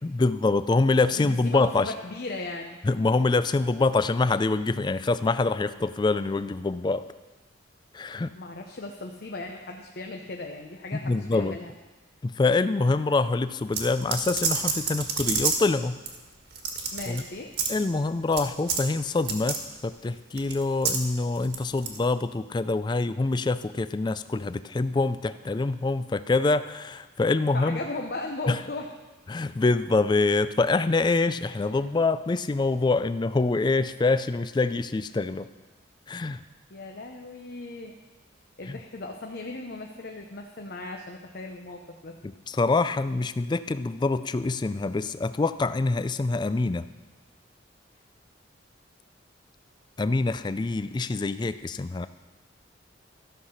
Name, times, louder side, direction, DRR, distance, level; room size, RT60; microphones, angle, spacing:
voice 1, 0.0-1.9 2.8-7.0 7.9-8.3 11.0-11.5 12.2-16.0 17.1-17.2 17.7-27.8 28.5-28.6 29.3-35.5 36.1-36.4 38.7-38.8 42.2-46.9 50.0-52.1, left 3 dB, 25° left, 13 dB, 0.3 m, -25 dB
voice 2, 1.2-2.8 8.4-11.7 16.9-17.5 27.5-28.9 36.7-37.9 38.6-42.2, left 2 dB, 55° left, 2 dB, 0.7 m, -37 dB
sound 1, 13.7-15.7 16.1-16.2 16.5-17.2 17.5-17.7 18.3-18.4 18.7-18.9 19.2-19.6 20.4-21.0 21.4-22.0, right 5 dB, 55° right, 1.5 m, -28 dB
13.5 x 5.7 x 6.5 m, 1.2 s
head